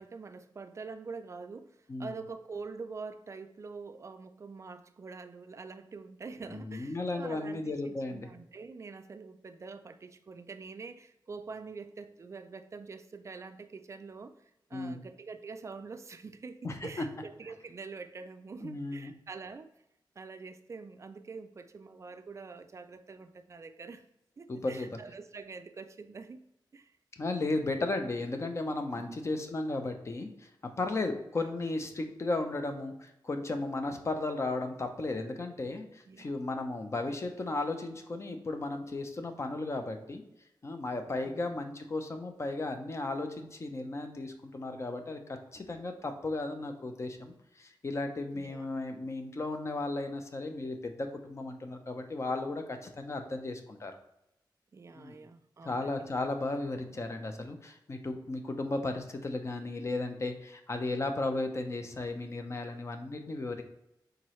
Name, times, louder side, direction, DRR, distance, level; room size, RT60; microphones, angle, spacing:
voice 1, 0.0-14.4 14.7-19.7 20.2-24.0 24.4-26.4 26.7-26.9 28.9-29.2 31.4-31.7 31.9-32.0 36.1-36.3 41.2-41.6 48.3-48.7 54.7-56.1, right 4 dB, 40° right, 9 dB, 0.3 m, -45 dB
voice 2, 6.5-8.3 14.7-15.0 16.6-17.0 18.6-19.1 24.5-24.9 27.2-30.5 30.8-40.2 40.6-45.2 45.5-54.0 54.9-55.2 55.6-63.6, left 2 dB, 35° left, 6 dB, 0.5 m, -35 dB
4.5 x 3.8 x 3.1 m, 0.84 s
wide cardioid pair, 170°, 8 cm